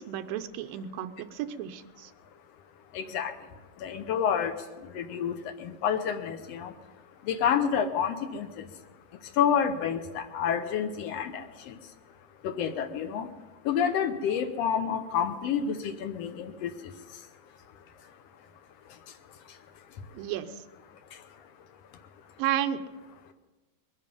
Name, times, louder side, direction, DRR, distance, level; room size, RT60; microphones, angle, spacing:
voice 1, 0.0-2.1 20.1-20.5 22.4-22.8, right 11 dB, 85° right, 8 dB, 2.5 m, -32 dB
voice 2, 2.9-3.4 3.8-4.6 4.8-6.7 7.2-8.7 9.3-11.8 12.4-13.3 13.6-16.9 21.1-21.2, left 8 dB, 80° left, 7 dB, 1.4 m, -29 dB
21.5 x 10.5 x 5.4 m, 1.2 s
omnidirectional pair, 4.0 m